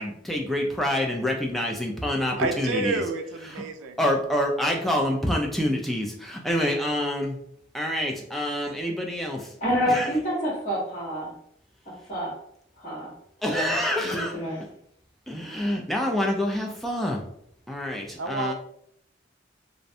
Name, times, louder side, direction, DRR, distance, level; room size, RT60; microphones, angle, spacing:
voice 1, 0.0-3.0 3.4-3.6 4.0-7.4 7.7-9.5 9.9-10.1 13.4-14.3 15.3-17.2 17.7-18.5, left 1 dB, ahead, 0 dB, 0.3 m, -27 dB
voice 2, 2.4-4.0 18.2-18.5, right 3 dB, 90° right, 6 dB, 0.3 m, -29 dB
voice 3, 9.6-11.3 12.1-12.3 12.8-13.1 13.5-13.7 14.0-14.6, equal, 40° left, -7 dB, 1.1 m, -27 dB
2.4 x 2.1 x 2.6 m, 0.70 s
head